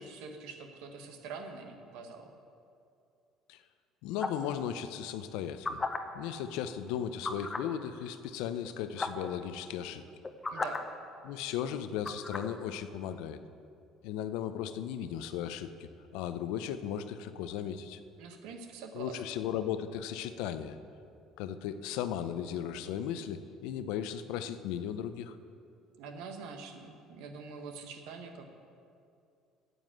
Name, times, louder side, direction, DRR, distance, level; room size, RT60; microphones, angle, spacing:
voice 1, 0.0-2.3 10.5-10.8 18.2-19.2 26.0-28.5, right 4 dB, 80° right, 5 dB, 1.2 m, -45 dB
voice 2, 4.0-5.8 6.1-10.0 11.2-13.4 14.0-18.0 18.9-20.8 21.4-25.4, left 9 dB, 80° left, 11 dB, 0.6 m, -36 dB
sound 1, 4.2-4.5 5.4-6.0 7.2-7.7 8.6-8.7 9.0-9.3 10.1-10.8 12.1-12.5, left 3 dB, 20° left, 0.8 m, -34 dB
9.2 x 7.9 x 7.6 m, 2.5 s
supercardioid pair, 95°, 0 cm